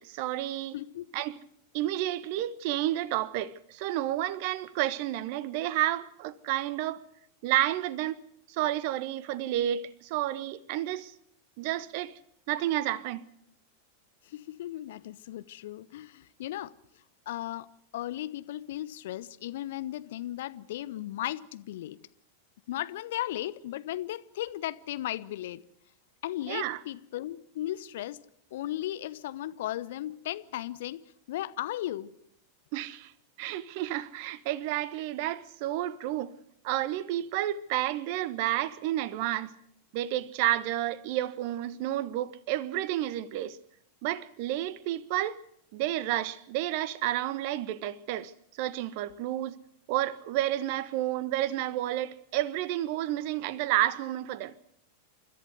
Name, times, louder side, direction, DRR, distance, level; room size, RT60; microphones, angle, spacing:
voice 1, 0.0-0.7 1.1-1.4 1.7-7.0 7.4-8.2 8.5-11.1 11.6-12.1 12.5-13.2 26.5-26.8 32.7-33.1 33.4-36.3 36.6-39.5 39.9-43.6 44.0-45.4 45.7-48.3 48.6-49.6 49.9-54.5, right 13 dB, 45° right, 1.1 m, -30 dB
voice 2, 0.7-1.1 14.2-16.7 17.3-17.7 17.9-22.0 22.7-25.6 26.2-28.2 28.5-31.0 31.3-32.1, left 13 dB, 55° left, 0.8 m, -36 dB
29.5 x 14.0 x 8.1 m
figure-of-eight pair, 90°, 0 cm